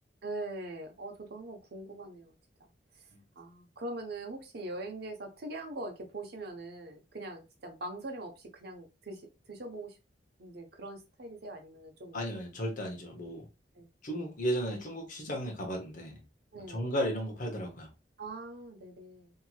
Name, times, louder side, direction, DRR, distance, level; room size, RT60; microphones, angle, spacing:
voice 1, 0.2-2.3 3.4-9.2 9.5-10.0 10.4-12.2 13.7-13.9 16.5-16.9 18.2-19.3, right 2 dB, 60° right, 0.7 m, -42 dB
voice 2, 12.1-13.4 14.0-16.1 16.7-17.9, equal, 45° left, 0.8 m, -34 dB
3.0 x 2.7 x 2.3 m
head